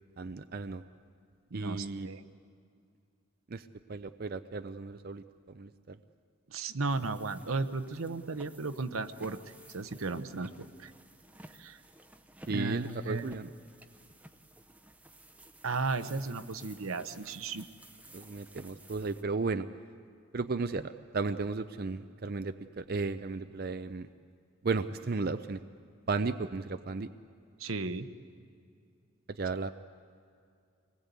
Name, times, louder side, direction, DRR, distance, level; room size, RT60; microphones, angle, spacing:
voice 1, 0.2-0.8 1.5-2.1 3.5-6.0 12.5-13.5 18.1-19.6 20.3-24.1 24.6-25.6 26.1-27.1 29.3-29.7, right 3 dB, 45° right, 10 dB, 0.5 m, -34 dB
voice 2, 1.5-2.2 6.5-9.4 9.7-10.9 11.6-11.8 12.5-13.3 15.6-17.6 27.6-28.1, right 3 dB, 80° right, 10 dB, 0.9 m, -35 dB
sound 1, 6.9-19.2, right 1 dB, 5° right, 0.7 m, -55 dB
25.0 x 20.0 x 8.3 m, 2.4 s
head